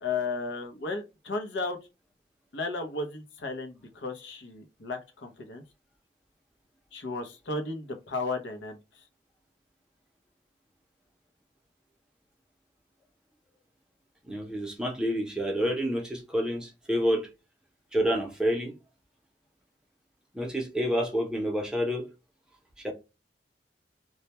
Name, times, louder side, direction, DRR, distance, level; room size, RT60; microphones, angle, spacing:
voice 1, 0.0-1.8 2.5-5.6 6.9-9.0, left 3 dB, 90° left, 0.7 m, -34 dB
voice 2, 14.2-17.3 17.9-18.7 20.3-22.1 22.8-22.9, equal, 5° right, 0.6 m, -28 dB
2.2 x 2.1 x 2.8 m
head